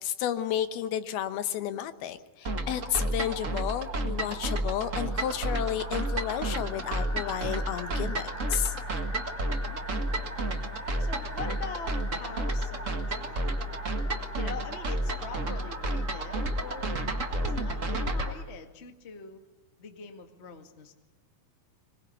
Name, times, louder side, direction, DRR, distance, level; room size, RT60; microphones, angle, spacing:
voice 1, 0.0-8.7, left 10 dB, 75° left, 11 dB, 2.9 m, -32 dB
sound 1, 2.4-18.3, right 1 dB, 70° right, 0.7 m, -31 dB
sound 2, 5.1-18.4, left 1 dB, 5° left, 2.0 m, -45 dB
voice 2, 9.6-10.3 11.0-13.8 14.3-19.5 19.8-21.0, left 5 dB, 35° left, 5 dB, 1.1 m, -44 dB
24.5 x 21.5 x 8.3 m, 1.2 s
omnidirectional pair, 4.6 m